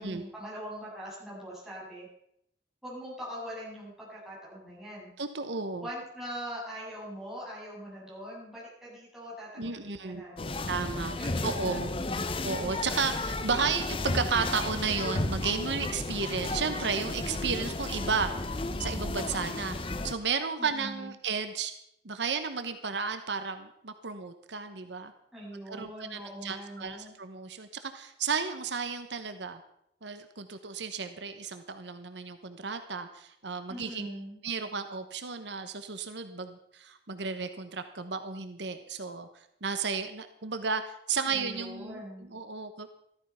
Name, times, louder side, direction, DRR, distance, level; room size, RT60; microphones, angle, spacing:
voice 1, 0.0-2.1 2.8-5.1 5.8-9.8 10.0-10.7 10.9-12.3 20.6-21.1 25.3-27.1 33.7-34.4 41.3-42.3, equal, ahead, -8 dB, 7.9 m, -42 dB
voice 2, 5.2-5.9 9.6-10.2 10.7-11.2 11.4-11.9 12.4-18.5 18.8-21.7 22.0-25.1 25.7-29.6 30.0-34.2 34.4-39.3 39.6-42.9, right 5 dB, 80° right, 8 dB, 1.1 m, -33 dB
sound 1, 10.4-20.1, left 2 dB, 30° left, 0.8 m, -33 dB
14.0 x 13.0 x 5.7 m, 0.75 s
head